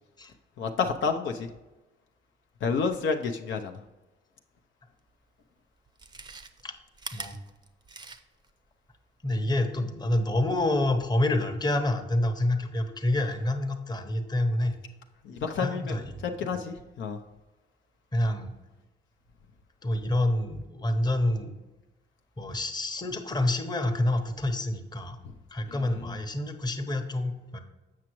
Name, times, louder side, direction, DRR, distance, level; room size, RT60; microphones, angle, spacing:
voice 1, 0.6-1.5 2.6-3.8 15.2-16.0 16.2-17.2, left 5 dB, 70° left, 4 dB, 0.6 m, -29 dB
Chewing mastication, 5.1-5.2 5.9-8.5 8.9-9.0, right 4 dB, 20° right, 0.5 m, -43 dB
voice 2, 9.2-14.8 15.6-16.5 18.1-18.5 19.8-21.5 22.4-25.2 25.5-27.6, left 1 dB, 20° left, 5 dB, 0.9 m, -28 dB
7.4 x 6.0 x 3.0 m, 1.1 s
cardioid pair, 90°, 20 cm